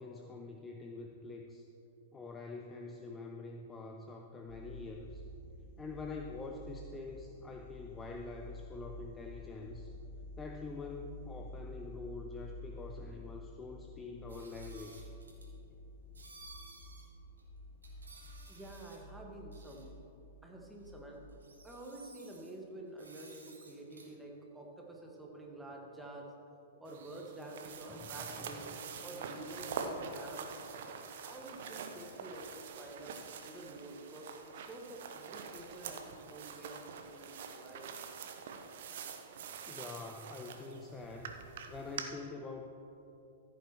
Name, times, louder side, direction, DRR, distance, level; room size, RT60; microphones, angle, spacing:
voice 1, 0.0-1.7 2.1-5.3 5.8-9.9 10.4-15.1 27.9-28.5 39.7-41.4 41.7-42.7, left 3 dB, 15° left, 2 dB, 0.6 m, -46 dB
sound 1, 4.5-21.2, left 2 dB, 50° left, 1.6 m, -50 dB
sound 2, 14.3-15.5 16.1-17.0 17.4-17.5 17.8-19.1 19.5-19.8 20.9-21.0 21.3-22.5 23.0-24.1, right 3 dB, 75° right, 1.8 m, -56 dB
voice 2, 18.5-19.9 20.4-21.2 21.6-26.3 26.8-30.7 31.2-33.1 33.4-38.0, right 1 dB, 5° right, -1 dB, 1.6 m, -49 dB
sound 3, 26.9-42.0, right 6 dB, 55° right, 0.8 m, -45 dB
14.5 x 8.5 x 3.0 m, 2.9 s
figure-of-eight pair, 105°, 0 cm